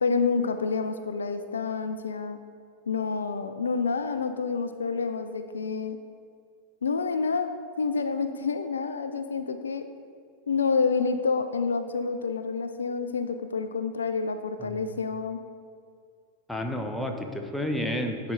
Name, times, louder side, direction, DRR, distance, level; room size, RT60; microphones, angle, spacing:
voice 1, 0.0-2.4 2.9-6.0 6.8-9.9 10.5-15.4, left 5 dB, 70° left, 9 dB, 0.3 m, -28 dB
voice 2, 16.5-18.3, left 1 dB, 5° left, 3 dB, 0.7 m, -31 dB
9.9 x 4.4 x 3.8 m, 2.2 s
figure-of-eight pair, 90°, 0 cm